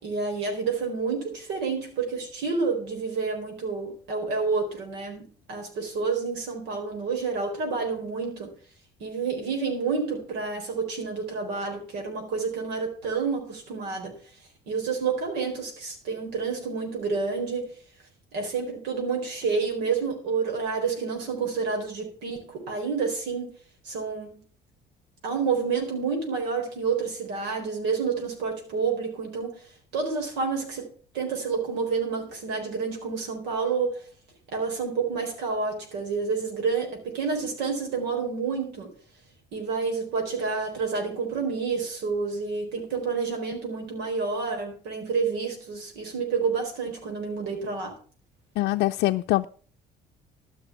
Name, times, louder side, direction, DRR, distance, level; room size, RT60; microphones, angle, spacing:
voice 1, 0.0-8.5 9.0-14.1 14.7-17.7 18.3-23.5 23.8-24.4 25.2-29.5 29.9-30.8 31.1-34.1 34.5-38.9 39.5-47.9, right 5 dB, 85° right, 4.1 m, -29 dB
voice 2, 48.6-49.4, left 18 dB, 80° left, 0.5 m, -23 dB
13.5 x 6.0 x 7.0 m
cardioid pair, 110°, 17 cm